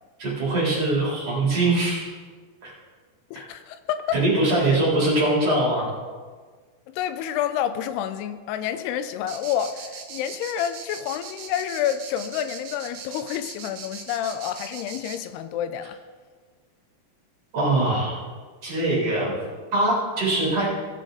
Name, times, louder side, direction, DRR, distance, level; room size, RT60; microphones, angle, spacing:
voice 1, 0.2-2.0 2.6-2.7 4.1-5.9 17.5-18.1 18.6-19.3 19.7-20.7, right 2 dB, 40° right, -6 dB, 4.5 m, -22 dB
voice 2, 3.3-4.2 4.6-4.8 6.9-16.0, left 10 dB, 85° left, 11 dB, 2.6 m, -29 dB
sound 1, 9.3-15.2, right 6 dB, 70° right, 1.5 m, -39 dB
18.0 x 7.4 x 3.9 m, 1.5 s
omnidirectional pair, 4.6 m